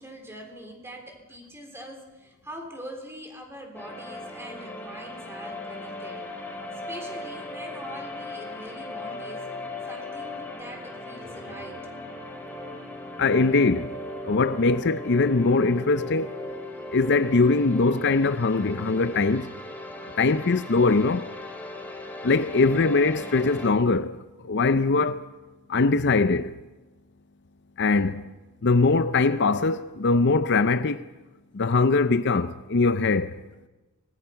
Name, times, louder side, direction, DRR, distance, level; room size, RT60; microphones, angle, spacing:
voice 1, 0.0-6.3 6.7-9.5 9.8-12.3, equal, 10° right, 3.7 m, -43 dB
sound 1, 3.7-23.7, left 2 dB, 10° left, 3.1 m, -38 dB
voice 2, 13.2-14.0 14.2-16.4 16.9-19.5 20.2-21.3 22.2-24.2 24.4-25.3 25.7-26.6 27.8-28.3 28.6-31.1 31.5-33.4, left 3 dB, 55° left, 0.6 m, -22 dB
25.0 x 20.0 x 5.8 m
head